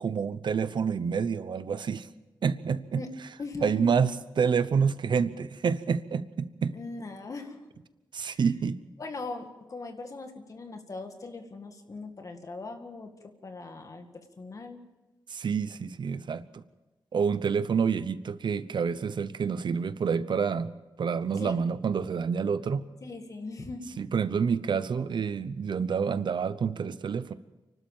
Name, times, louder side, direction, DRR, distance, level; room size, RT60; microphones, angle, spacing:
voice 1, 0.0-2.1 2.4-3.0 3.6-6.7 8.1-8.8 15.3-16.6 17.1-20.7 21.0-22.9 24.0-27.3, right 6 dB, 85° right, 14 dB, 0.9 m, -28 dB
voice 2, 3.4-3.9 6.7-7.6 8.2-8.4 9.0-13.1 13.4-14.8 21.4-21.6 23.0-23.9, left 3 dB, 45° left, 6 dB, 2.0 m, -40 dB
30.0 x 12.0 x 7.3 m, 1.1 s
wide cardioid pair, 175°, 8 cm